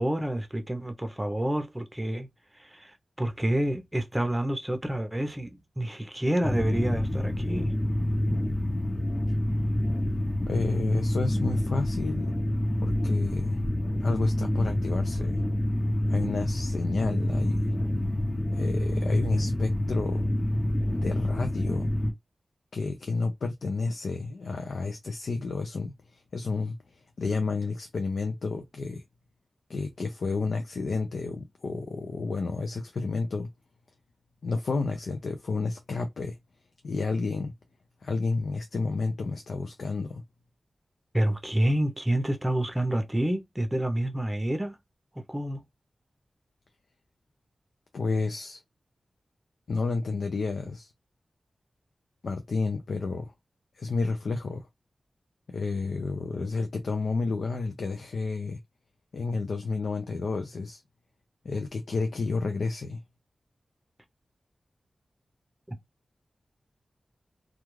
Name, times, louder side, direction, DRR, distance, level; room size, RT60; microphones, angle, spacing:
voice 1, 0.0-2.3 2.5-7.7 41.1-44.8 45.3-45.6 65.7-65.8, right 1 dB, 15° right, 0.6 m, -28 dB
sound 1, 6.4-22.1, left 1 dB, 25° left, 0.7 m, -27 dB
voice 2, 10.4-12.3 12.8-13.6 14.0-15.4 16.1-17.7 18.5-20.2 21.0-21.9 22.7-29.0 29.7-33.5 34.4-36.4 36.8-37.5 38.0-40.2 47.9-48.6 49.7-50.9 52.2-53.3 53.7-54.7 55.5-58.6 59.1-60.8 61.4-63.0, left 3 dB, 80° left, 0.4 m, -31 dB
2.3 x 2.3 x 3.1 m
wide cardioid pair, 75°, 0 cm